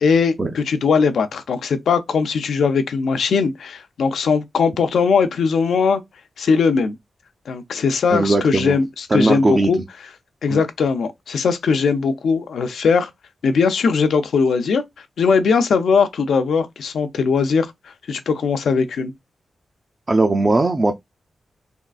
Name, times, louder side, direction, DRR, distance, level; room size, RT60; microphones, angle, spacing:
voice 1, 0.0-6.0 6.4-7.0 7.5-9.8 10.4-13.1 13.4-14.8 15.2-17.7 18.1-19.1, left 5 dB, 85° left, 0.5 m, -19 dB
voice 2, 8.1-8.7 9.1-9.7 10.5-10.6 20.1-21.0, right 2 dB, 30° right, 0.4 m, -18 dB
3.6 x 2.3 x 2.4 m
wide cardioid pair, 120°, 0 cm